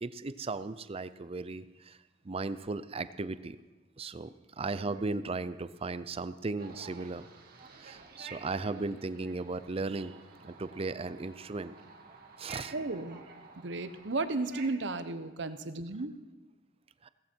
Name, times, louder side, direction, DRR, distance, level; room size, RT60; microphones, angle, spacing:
voice 1, 0.0-2.0 2.2-3.6 4.0-7.3 7.6-10.2 10.4-11.7 12.4-12.7 17.0-17.1, right 3 dB, 30° right, 14 dB, 0.5 m, -36 dB
sound 1, 6.6-14.7, right 4 dB, 55° right, 2.0 m, -51 dB
voice 2, 12.7-13.2 13.6-16.1, right 3 dB, 70° right, 11 dB, 0.9 m, -34 dB
17.0 x 14.5 x 4.5 m, 1.1 s
head